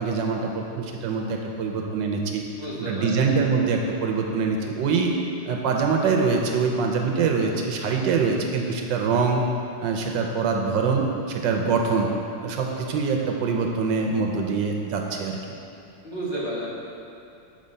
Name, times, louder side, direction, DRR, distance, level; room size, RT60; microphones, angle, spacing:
voice 1, 0.0-2.4 2.8-5.1 5.5-9.4 9.8-12.1 12.4-15.6, right 5 dB, 75° right, 1 dB, 1.3 m, -24 dB
voice 2, 2.6-3.3 16.0-16.7, right 1 dB, 35° left, -8 dB, 2.0 m, -31 dB
7.4 x 5.0 x 5.4 m, 2.6 s
omnidirectional pair, 2.1 m